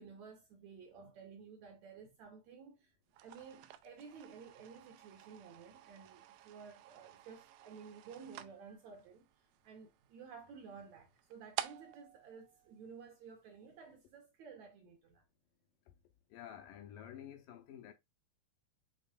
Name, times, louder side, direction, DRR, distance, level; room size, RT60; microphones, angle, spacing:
voice 1, 0.0-9.3 9.6-15.2, right 6 dB, 70° right, 1.8 m, -54 dB
sound 1, 3.1-13.5, right 13 dB, 85° right, 2.3 m, -51 dB
voice 2, 16.3-17.9, left 10 dB, 80° left, 2.3 m, -50 dB
6.8 x 3.0 x 2.4 m
omnidirectional pair, 4.0 m